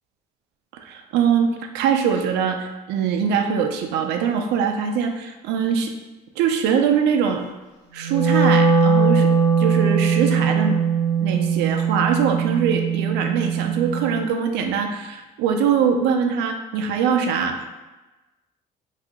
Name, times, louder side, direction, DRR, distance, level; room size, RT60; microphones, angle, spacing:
voice 1, 0.7-5.9 6.4-7.5 7.9-9.3 9.6-10.8 11.2-17.7, right 7 dB, 85° right, 5 dB, 0.4 m, -22 dB
Wind instrument woodwind instrument, 8.0-14.2, right 5 dB, 80° left, 0.6 m, -20 dB
2.8 x 2.4 x 3.5 m, 1.1 s
cardioid pair, 110°, 17 cm